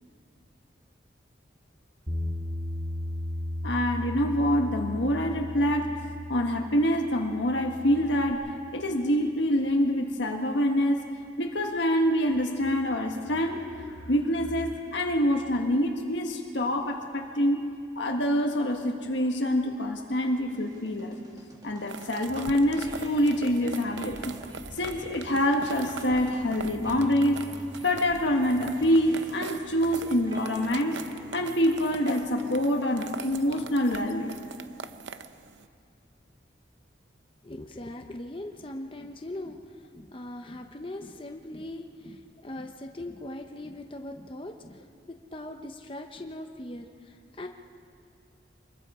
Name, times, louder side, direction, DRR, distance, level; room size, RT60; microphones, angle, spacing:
Bass guitar, 2.1-8.3, left 1 dB, 45° right, 2.6 m, -35 dB
voice 1, 3.6-6.0 6.3-11.1 11.4-17.6 17.9-21.2 21.6-24.4 24.7-27.4 27.8-31.0 31.3-34.4, equal, 70° left, 2 dB, 1.5 m, -26 dB
sound 1, 20.5-34.0, equal, 20° right, 2.3 m, -46 dB
sound 2, 21.9-35.6, right 5 dB, 75° right, 0.7 m, -42 dB
voice 2, 37.4-47.5, left 1 dB, 25° left, 4 dB, 0.8 m, -40 dB
26.0 x 21.5 x 4.9 m, 2.3 s
head